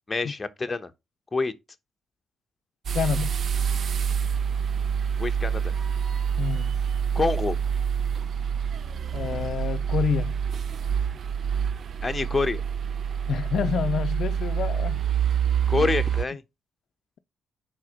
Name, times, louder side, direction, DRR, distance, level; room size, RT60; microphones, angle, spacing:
voice 1, 0.1-0.9 1.3-1.5 5.2-5.7 7.1-7.6 12.0-12.6 15.7-16.4, left 3 dB, 20° left, 0.9 m, -26 dB
voice 2, 2.9-3.3 6.4-6.7 9.1-10.4 13.3-15.0 15.8-15.9, left 7 dB, 65° left, 0.4 m, -28 dB
sound 1, 2.9-16.3, right 7 dB, 55° right, 0.5 m, -27 dB
4.8 x 4.4 x 6.0 m
cardioid pair, 90°, 0 cm